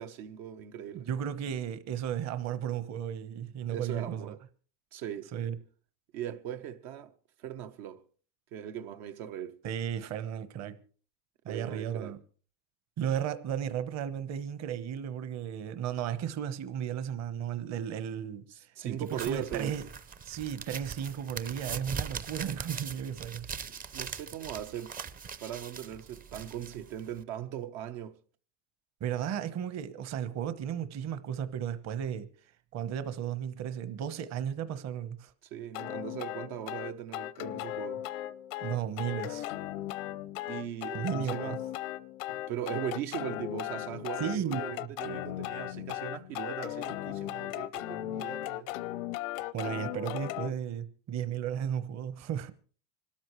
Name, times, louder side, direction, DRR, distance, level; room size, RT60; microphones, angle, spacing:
voice 1, 0.0-1.1 3.7-4.4 4.9-5.3 6.1-7.1 7.4-8.0 8.5-9.6 11.5-12.1 18.5-19.7 23.9-24.9 25.4-28.1 35.4-38.0 40.5-41.6 42.3-48.7, right 10 dB, 70° right, 1.0 m, -39 dB
voice 2, 0.9-4.3 5.3-5.6 9.6-10.8 11.4-12.2 13.0-19.9 20.2-23.5 29.0-32.3 32.7-35.3 38.6-39.5 40.9-41.6 44.2-44.9 49.5-52.5, right 9 dB, 45° right, 1.1 m, -34 dB
sound 1, 19.1-27.2, right 6 dB, 20° right, 0.6 m, -41 dB
sound 2, 35.7-50.5, left 15 dB, 80° left, 0.7 m, -37 dB
26.0 x 13.0 x 3.1 m
supercardioid pair, 130°, 38 cm